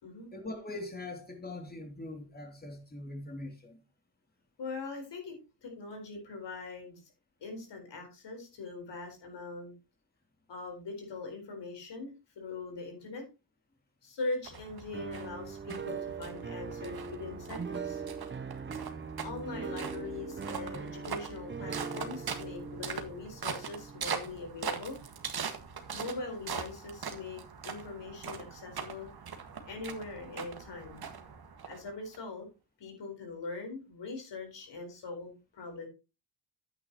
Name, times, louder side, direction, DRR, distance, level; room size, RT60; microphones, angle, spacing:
voice 1, 0.3-3.8, left 2 dB, 20° left, 2.9 m, -42 dB
voice 2, 4.6-7.0 7.4-9.7 10.5-13.3 14.0-18.0 19.2-25.0 25.9-29.1 29.7-31.0 31.6-32.5 32.8-35.9, left 3 dB, 65° left, 4.3 m, -41 dB
sound 1, 14.4-32.2, right 6 dB, 50° right, 1.8 m, -42 dB
sound 2, 14.9-24.9, right 5 dB, 25° right, 0.8 m, -41 dB
10.0 x 8.9 x 3.0 m
cardioid pair, 65°, 46 cm